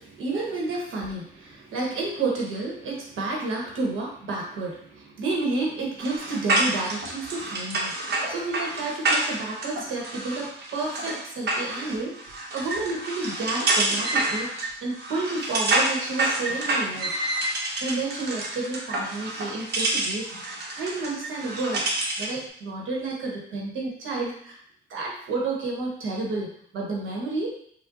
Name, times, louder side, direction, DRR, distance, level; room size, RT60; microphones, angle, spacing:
voice 1, 0.0-17.1 17.8-24.6 24.9-27.5, right 3 dB, 75° right, -2 dB, 1.1 m, -31 dB
sound 1, 6.0-22.4, right 2 dB, 55° right, 1.0 m, -28 dB
4.7 x 2.3 x 2.5 m, 0.64 s
cardioid pair, 90°, 20 cm